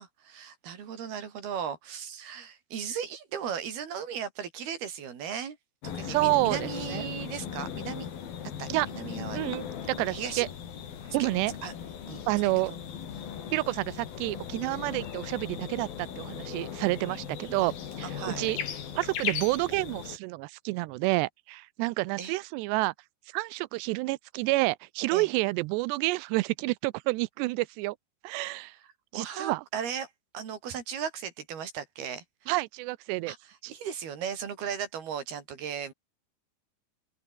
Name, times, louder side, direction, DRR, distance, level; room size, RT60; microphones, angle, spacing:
voice 1, 0.0-5.6 5.8-8.1 8.6-9.5 9.9-10.5 11.2-11.3 11.6-11.7 12.1-12.2 12.7-12.8 14.9-15.0 18.0-18.4 22.2-22.4 25.1-25.3 29.1-32.5 33.3-35.9, right 8 dB, 60° right, 5.3 m, -37 dB
sound 1, 5.8-20.2, left 8 dB, 60° left, 4.5 m, -38 dB
voice 2, 6.0-7.1 8.7-8.9 9.3-10.5 11.1-11.5 12.3-12.7 13.5-18.6 19.0-22.9 23.3-28.0 28.2-28.7 29.1-29.6 32.5-33.3 33.6-33.7, right 21 dB, 80° right, 2.6 m, -29 dB
open air
omnidirectional pair, 5.1 m